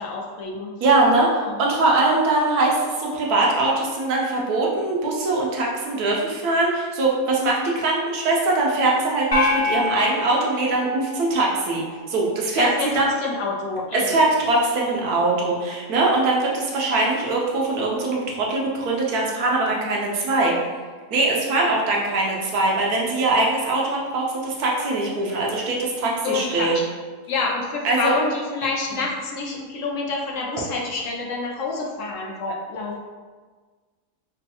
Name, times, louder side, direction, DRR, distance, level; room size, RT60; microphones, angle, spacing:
voice 1, 0.0-0.7 1.4-1.5 12.6-14.2 26.2-26.9 27.3-33.0, left 3 dB, 65° left, -1 dB, 0.9 m, -27 dB
voice 2, 0.8-1.3 1.6-12.7 12.9-13.1 13.9-20.5 21.1-26.8 27.8-28.1, right 2 dB, 85° right, -2 dB, 1.3 m, -22 dB
sound 1, 9.3-11.8, left 3 dB, 25° left, 1.0 m, -26 dB
5.0 x 2.3 x 2.8 m, 1.5 s
omnidirectional pair, 1.6 m